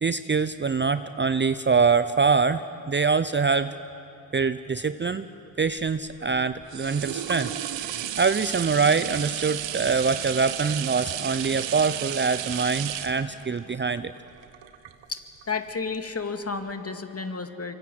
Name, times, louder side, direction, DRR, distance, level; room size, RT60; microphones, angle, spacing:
voice 1, 0.0-3.7 4.3-5.3 5.6-7.5 8.2-14.1, right 5 dB, 25° right, 12 dB, 0.7 m, -24 dB
sound 1, 5.7-15.4 15.9-16.0, right 11 dB, 65° right, 1.3 m, -33 dB
voice 2, 15.1-17.7, left 4 dB, 30° left, 7 dB, 2.3 m, -32 dB
25.0 x 24.5 x 7.8 m, 2.9 s
hypercardioid pair, 45°, 47 cm